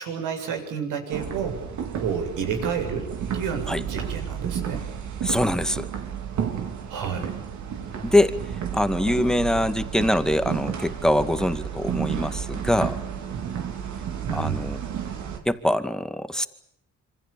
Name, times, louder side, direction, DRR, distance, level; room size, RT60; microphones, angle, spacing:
voice 1, 0.0-1.6 1.9-3.1 3.3-4.9 6.9-7.3 14.2-14.7, right 6 dB, 90° right, 5 dB, 7.4 m, -30 dB
sound 1, 1.1-15.4, right 8 dB, 75° right, 4.3 m, -32 dB
voice 2, 5.2-5.9 8.0-8.4 8.7-13.0 14.3-14.8 15.5-16.5, left 1 dB, ahead, 10 dB, 2.2 m, -23 dB
27.0 x 25.5 x 8.6 m, 0.76 s
cardioid pair, 90°, 30 cm